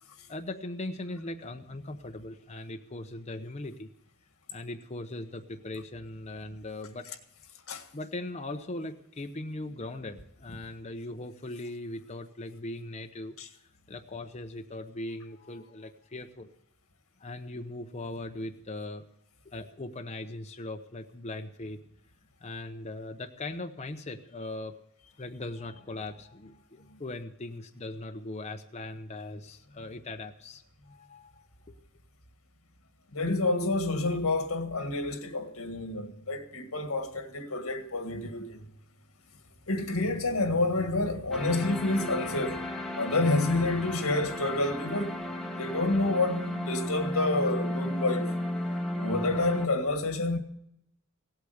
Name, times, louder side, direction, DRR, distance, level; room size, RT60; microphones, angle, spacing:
voice 1, 0.3-3.9 4.5-7.1 7.9-13.4 13.9-16.5 17.2-19.0 19.4-21.8 22.4-24.8 25.2-31.7, left 2 dB, 30° left, 0.8 m, -39 dB
voice 2, 33.1-38.6 39.7-42.6 43.0-45.1 45.5-48.4 49.0-50.4, left 2 dB, 90° left, 1.9 m, -29 dB
sound 1, 41.3-49.7, left 1 dB, ahead, 1.1 m, -34 dB
17.5 x 8.4 x 8.0 m
head